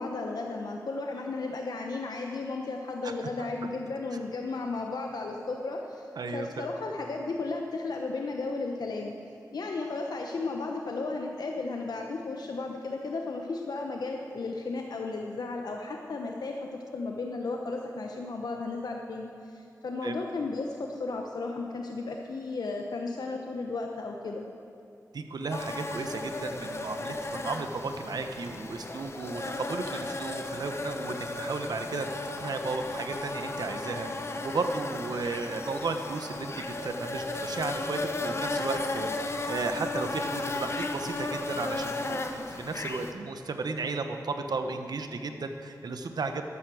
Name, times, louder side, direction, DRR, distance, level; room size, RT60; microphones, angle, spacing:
voice 1, 0.0-6.1 6.3-9.1 9.5-16.6 16.9-24.5, left 3 dB, 75° left, 2 dB, 1.0 m, -34 dB
voice 2, 6.2-6.7 20.0-20.1 25.1-32.1 32.4-46.5, right 3 dB, 75° right, 7 dB, 1.0 m, -34 dB
sound 1, 25.5-43.1, left 2 dB, 40° left, 1.0 m, -35 dB
13.0 x 13.0 x 6.3 m, 2.7 s
wide cardioid pair, 100°, 7 cm